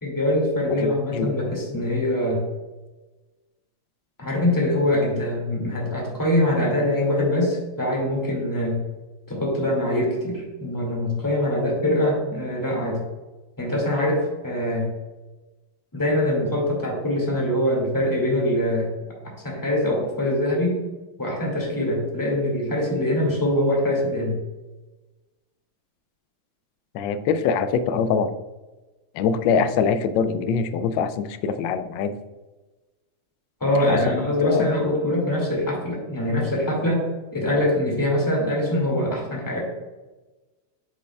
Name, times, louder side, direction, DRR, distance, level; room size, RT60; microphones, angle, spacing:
voice 1, 0.0-2.4 4.2-8.8 9.3-13.0 13.6-14.9 15.9-18.9 19.4-20.8 21.2-24.4 33.6-37.0 37.3-39.6, left 1 dB, 10° left, -2 dB, 2.0 m, -23 dB
voice 2, 0.7-1.4 26.9-28.3 29.1-32.2 33.7-34.7, left 6 dB, 75° left, 10 dB, 1.1 m, -24 dB
8.2 x 6.6 x 2.3 m, 1.2 s
omnidirectional pair, 2.4 m